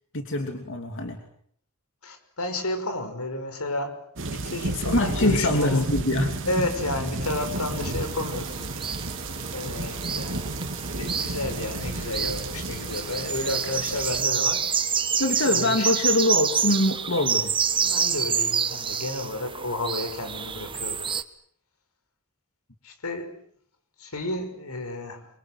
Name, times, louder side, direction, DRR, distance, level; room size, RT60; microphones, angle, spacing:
voice 1, 0.1-1.2 4.8-6.5 15.2-17.5, left 1 dB, 60° left, 2.9 m, -24 dB
voice 2, 2.0-4.0 4.3-5.9 6.5-8.7 9.5-10.4 11.0-14.7 15.3-15.9 17.8-21.0 22.8-23.4 24.0-25.3, left 2 dB, 85° left, 5.6 m, -31 dB
sound 1, 4.2-14.2, right 2 dB, 60° right, 3.0 m, -32 dB
sound 2, 7.2-21.2, right 7 dB, 25° right, 1.4 m, -28 dB
28.5 x 24.0 x 7.9 m
head